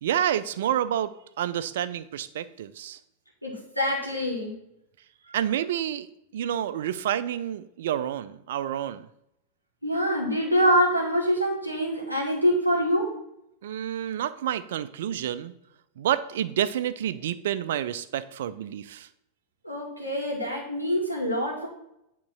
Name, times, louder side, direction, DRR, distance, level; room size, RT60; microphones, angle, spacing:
voice 1, 0.0-3.0 5.3-6.1 6.3-9.1 13.6-15.5 16.0-19.1, right 10 dB, 60° right, 14 dB, 0.5 m, -29 dB
voice 2, 3.4-4.5 9.8-13.1 19.6-21.7, equal, 90° left, -2 dB, 2.2 m, -25 dB
8.7 x 3.8 x 5.9 m, 0.80 s
figure-of-eight pair, 90°, 0 cm